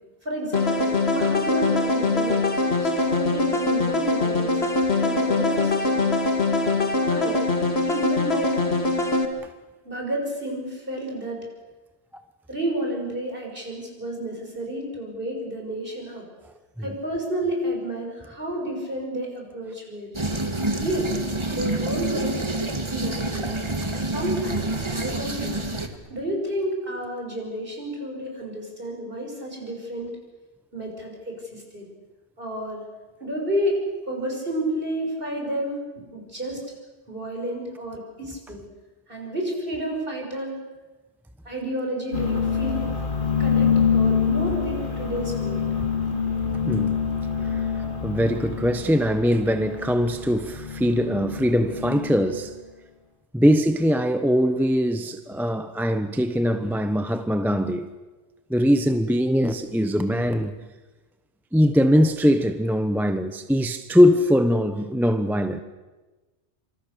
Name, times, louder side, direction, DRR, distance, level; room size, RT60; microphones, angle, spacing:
voice 1, 0.2-2.5 2.8-4.6 5.0-6.1 7.0-7.5 7.9-8.6 9.8-11.4 12.5-16.2 16.8-20.1 20.8-21.1 21.5-22.4 22.9-23.5 24.1-25.6 26.1-30.1 30.7-31.9 32.4-32.8 33.2-35.8 36.1-36.6 37.1-38.6 39.1-40.6 41.4-42.9 43.4-45.7 47.4-47.6, right 1 dB, 50° right, 6.5 m, -30 dB
sound 1, 0.5-9.3, left 3 dB, 60° left, 2.4 m, -23 dB
sound 2, 20.1-25.9, right 2 dB, 25° right, 1.8 m, -27 dB
sound 3, 42.1-52.4, left 6 dB, 45° left, 3.8 m, -26 dB
voice 2, 46.6-47.0 47.5-47.6 48.0-52.5 53.3-57.9 58.5-60.5 61.5-65.6, equal, ahead, 0.9 m, -21 dB
26.5 x 26.0 x 6.9 m
omnidirectional pair, 1.2 m